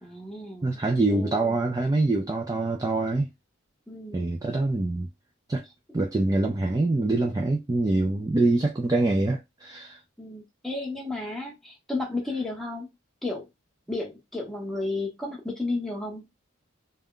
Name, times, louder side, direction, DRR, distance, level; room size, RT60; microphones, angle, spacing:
voice 1, 0.0-0.7 1.1-1.6 3.9-4.2 10.2-12.9 13.2-13.5 13.9-16.3, left 2 dB, ahead, 0.8 m, -33 dB
voice 2, 0.6-3.3 4.1-5.1 5.5-5.6 5.9-10.0, right 2 dB, 15° right, 0.3 m, -25 dB
2.3 x 2.1 x 3.6 m
head